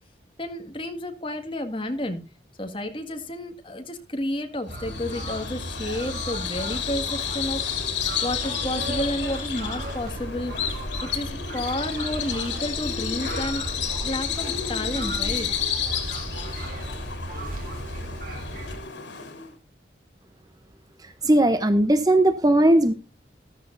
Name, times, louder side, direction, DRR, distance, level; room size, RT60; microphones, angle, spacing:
voice 1, 0.4-2.2 2.6-7.6 8.2-10.6 11.0-15.5, left 1 dB, 30° left, 5 dB, 1.9 m, -31 dB
Bird vocalization bird call bird song, 4.7-19.5, left 8 dB, 85° left, 3.0 m, -31 dB
sound 1, 4.7-18.8, right 1 dB, 50° right, 3.7 m, -35 dB
voice 2, 21.0-22.9, right 1 dB, 20° right, 10 dB, 0.8 m, -18 dB
14.0 x 13.5 x 2.6 m, 0.29 s
head